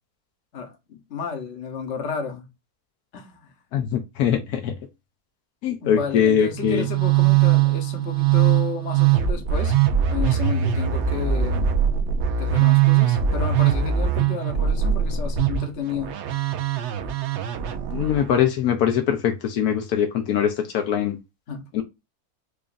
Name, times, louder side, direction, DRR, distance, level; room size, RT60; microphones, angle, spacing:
voice 1, 0.5-2.5 3.1-3.5 5.8-9.7 10.1-11.7 12.4-16.2 21.5-21.7, left 6 dB, 50° left, 1.1 m, -32 dB
voice 2, 3.7-4.7 5.6-6.9 17.9-21.2 21.7-21.8, left 8 dB, 80° left, 1.1 m, -22 dB
Musical instrument, 6.5-18.3, right 9 dB, 65° right, 0.7 m, -21 dB
4.8 x 2.5 x 2.5 m
omnidirectional pair, 1.6 m